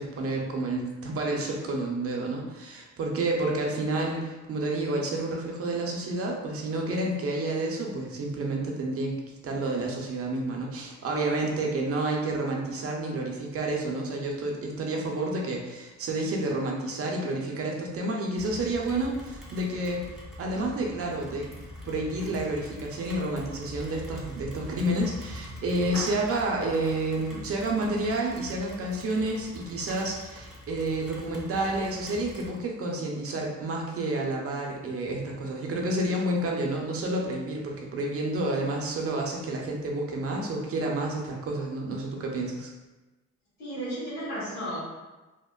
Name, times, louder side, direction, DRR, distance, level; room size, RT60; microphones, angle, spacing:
voice 1, 0.0-21.5 21.8-42.7, right 2 dB, 50° right, 0 dB, 0.6 m, -30 dB
Rain, 18.4-32.6, equal, ahead, 0.6 m, -44 dB
Clapping, 25.9-28.2, equal, 75° left, 1.0 m, -44 dB
voice 2, 43.6-44.8, equal, 60° left, -9 dB, 1.4 m, -33 dB
2.8 x 2.1 x 2.3 m, 1.1 s
cardioid pair, 90°, 30 cm